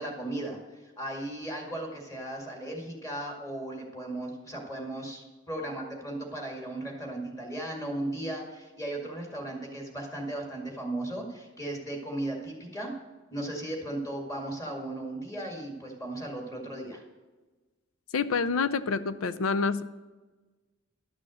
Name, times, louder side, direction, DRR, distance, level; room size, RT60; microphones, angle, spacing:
voice 1, 0.0-12.9 13.3-17.0, right 1 dB, 15° left, 0 dB, 2.1 m, -36 dB
voice 2, 18.1-19.8, left 5 dB, 85° left, 13 dB, 0.5 m, -27 dB
11.5 x 6.2 x 6.3 m, 1.2 s
head